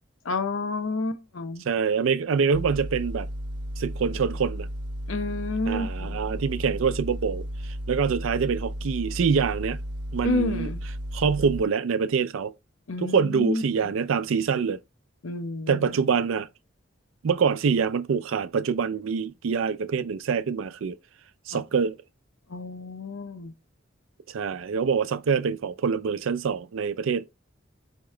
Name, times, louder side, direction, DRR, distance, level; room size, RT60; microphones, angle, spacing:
voice 1, 0.2-1.6 5.1-6.2 10.2-10.8 12.9-13.9 15.2-16.0 21.5-21.6 22.5-23.5, left 2 dB, 85° left, 0.7 m, -30 dB
voice 2, 1.6-3.3 3.8-4.7 5.7-9.8 10.1-10.7 11.1-12.5 13.0-14.8 15.7-16.5 17.2-21.0 21.5-22.0 24.3-27.2, right 6 dB, 85° right, 0.4 m, -25 dB
sound 1, 2.5-11.6, equal, 20° right, 0.7 m, -34 dB
4.8 x 2.9 x 3.2 m
head